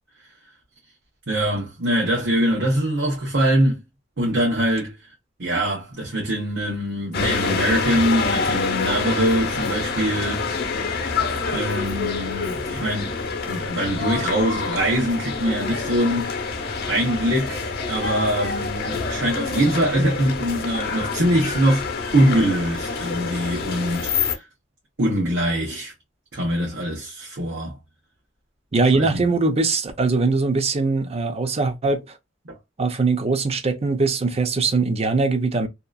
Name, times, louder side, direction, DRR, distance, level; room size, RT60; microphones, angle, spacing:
voice 1, 1.3-3.8 4.2-4.9 5.4-10.7 11.5-13.2 13.5-16.6 16.9-17.6 17.9-24.4 25.0-25.9 26.3-27.8 28.9-29.2 32.4-32.5, right 1 dB, 70° right, 1.0 m, -23 dB
sound 1, 7.1-24.4, left 4 dB, 55° left, 0.8 m, -27 dB
voice 2, 28.7-32.0 32.8-35.7, right 3 dB, 35° right, 0.5 m, -21 dB
2.8 x 2.4 x 2.3 m
head